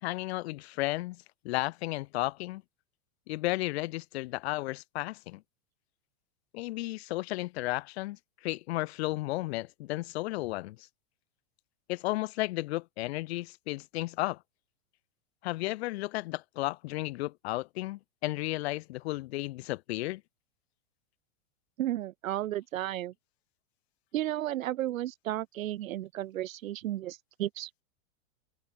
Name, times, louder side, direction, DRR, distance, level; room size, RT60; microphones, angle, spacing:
voice 1, 0.0-2.6 3.3-5.4 6.5-10.9 11.9-14.4 15.4-20.2, left 19 dB, 50° left, 2.9 m, -33 dB
voice 2, 21.8-23.1 24.1-27.8, right 13 dB, 70° right, 2.2 m, -33 dB
open air
supercardioid pair, 170°, 41 cm